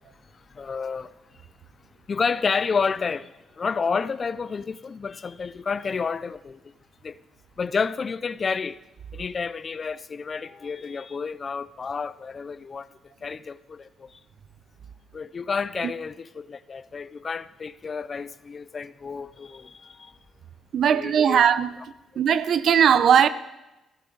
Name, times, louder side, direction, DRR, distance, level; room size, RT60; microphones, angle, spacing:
voice 1, 0.6-1.1 2.1-3.3 3.6-6.6 7.0-7.2 7.6-8.8 9.1-12.9 13.2-14.1 15.1-19.7 20.9-21.4, left 5 dB, 40° left, 0.4 m, -30 dB
voice 2, 20.7-21.8 22.2-23.3, right 8 dB, 65° right, 0.6 m, -19 dB
15.5 x 12.5 x 3.9 m
cardioid pair, 90°, 0 cm